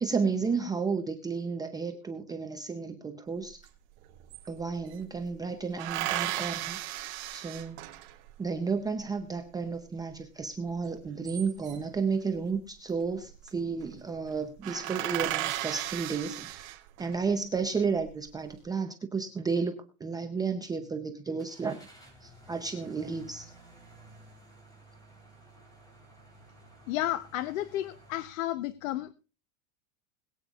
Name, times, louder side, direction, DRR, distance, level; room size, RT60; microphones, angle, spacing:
voice 1, 0.0-3.6 4.5-6.8 7.3-7.9 8.4-16.7 17.0-21.9 22.2-23.5, right 5 dB, 10° right, 5 dB, 0.7 m, -32 dB
sound 1, 3.7-3.8 4.0-5.0 5.8-8.3 11.0-12.0 13.1-13.5 13.8-13.9 14.3-14.4 14.6-17.2 17.8-18.4, right 16 dB, 50° right, 2.3 m, -35 dB
Car / Engine starting, 21.4-28.2, right 2 dB, 10° left, 3.6 m, -54 dB
voice 2, 26.9-29.1, left 14 dB, 70° left, 13 dB, 1.0 m, -32 dB
21.5 x 8.8 x 2.4 m, 0.34 s
supercardioid pair, 170°, 42 cm